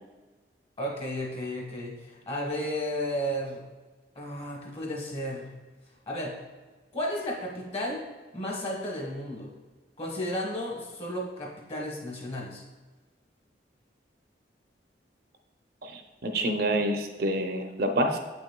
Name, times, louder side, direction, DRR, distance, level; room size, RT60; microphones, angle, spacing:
voice 1, 0.8-3.7 4.1-5.5 6.1-6.4 6.9-8.0 8.3-9.5 10.0-12.6, equal, 30° left, -1 dB, 1.2 m, -33 dB
voice 2, 15.8-18.2, right 1 dB, 55° right, 4 dB, 0.6 m, -27 dB
7.8 x 6.0 x 2.2 m, 1.3 s
head